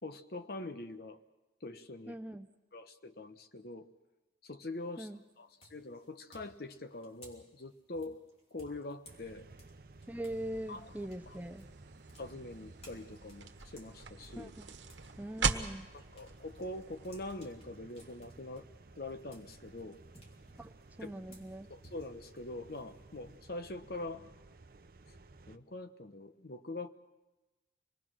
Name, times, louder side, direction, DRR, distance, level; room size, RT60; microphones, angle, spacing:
voice 1, 0.0-1.2 1.6-2.2 2.7-3.9 4.4-5.1 5.4-8.2 8.5-9.5 10.7-10.9 11.3-11.4 12.2-14.5 15.9-18.6 19.0-20.0 21.0-21.1 21.7-24.3 25.1-25.2 25.5-26.9, left 2 dB, 55° left, 9 dB, 1.0 m, -44 dB
voice 2, 2.1-2.5 5.0-5.2 10.1-11.7 14.4-14.7 15.2-15.9 20.6-21.7, right 1 dB, 10° right, 6 dB, 0.7 m, -42 dB
sound 1, 4.7-5.1 5.6-10.4 10.7-15.6 16.0-23.4, equal, 30° left, 3.1 m, -60 dB
sound 2, 9.0-25.6, right 3 dB, 50° right, 0.8 m, -56 dB
sound 3, 10.3-17.4, right 5 dB, 85° right, 1.4 m, -41 dB
26.0 x 20.0 x 6.2 m, 1.1 s
head